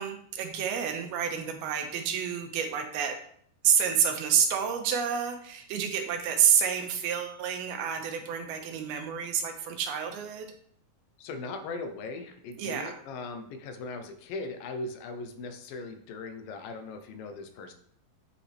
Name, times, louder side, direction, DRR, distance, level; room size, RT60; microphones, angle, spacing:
voice 1, 0.0-3.2 3.6-10.5 12.6-12.9, right 8 dB, 90° right, 5 dB, 2.9 m, -28 dB
voice 2, 11.2-17.7, left 3 dB, 75° left, 7 dB, 2.5 m, -39 dB
8.5 x 8.1 x 3.4 m, 0.64 s
omnidirectional pair, 4.3 m